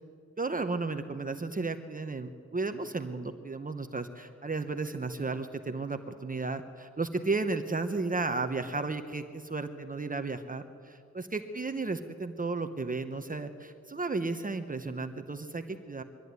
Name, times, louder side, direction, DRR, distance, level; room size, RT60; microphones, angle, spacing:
voice 1, 0.4-16.0, right 3 dB, 25° right, 8 dB, 1.0 m, -34 dB
22.5 x 13.5 x 9.6 m, 2.4 s
cardioid pair, 70°, 31 cm